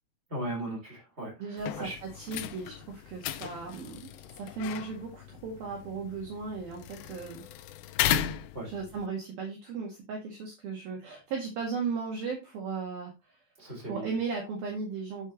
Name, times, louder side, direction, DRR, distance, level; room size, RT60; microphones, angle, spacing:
voice 1, 0.3-2.0 8.5-8.7 13.6-14.1, right 1 dB, 15° right, -1 dB, 4.2 m, -37 dB
voice 2, 1.4-7.4 8.6-13.4 13.8-15.3, right 5 dB, 60° right, 0 dB, 3.2 m, -36 dB
sound 1, 1.6-9.1, left 11 dB, 85° left, 2.5 m, -36 dB
10.0 x 6.7 x 3.0 m, 0.24 s
omnidirectional pair, 5.6 m